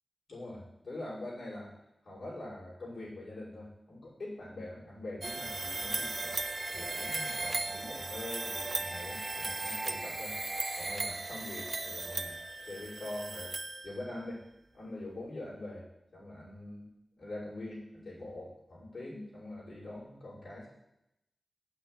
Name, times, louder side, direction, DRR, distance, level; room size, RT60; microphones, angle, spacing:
voice 1, 0.3-1.7 2.0-6.4 6.7-10.4 10.7-12.4 12.7-13.5 13.8-14.4 14.7-15.9 16.1-20.7, left 1 dB, 70° left, -8 dB, 6.1 m, -43 dB
sound 1, 5.2-14.3, right 3 dB, 40° right, 0.7 m, -37 dB
9.0 x 8.2 x 9.1 m, 0.87 s
wide cardioid pair, 110°, 0 cm